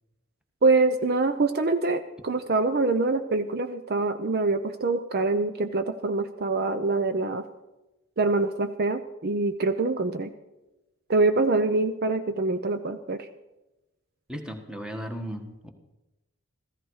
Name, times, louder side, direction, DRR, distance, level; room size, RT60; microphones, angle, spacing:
voice 1, 0.6-7.5 8.2-10.3 11.1-13.3, right 3 dB, 50° right, 9 dB, 0.6 m, -25 dB
voice 2, 14.3-15.7, equal, 5° right, 5 dB, 1.4 m, -36 dB
15.0 x 14.5 x 4.8 m, 1.0 s
head